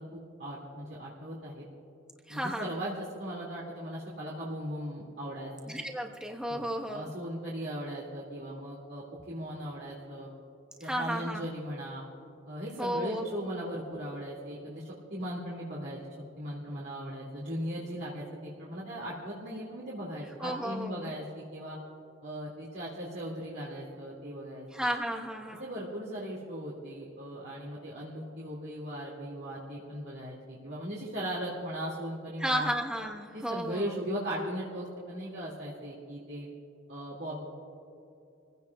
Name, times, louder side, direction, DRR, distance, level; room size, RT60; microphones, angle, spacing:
voice 1, 0.0-1.7 2.3-5.7 6.5-10.3 10.8-12.0 12.5-16.0 16.4-21.8 22.2-24.9 25.6-32.7 33.3-36.5 36.9-37.5, equal, 60° right, -6 dB, 2.3 m, -38 dB
voice 2, 2.3-2.7 5.7-7.1 10.8-11.5 12.8-13.5 20.4-21.1 24.7-25.7 32.4-33.9, equal, 5° right, 0 dB, 1.2 m, -33 dB
28.5 x 16.0 x 2.4 m, 2.7 s
head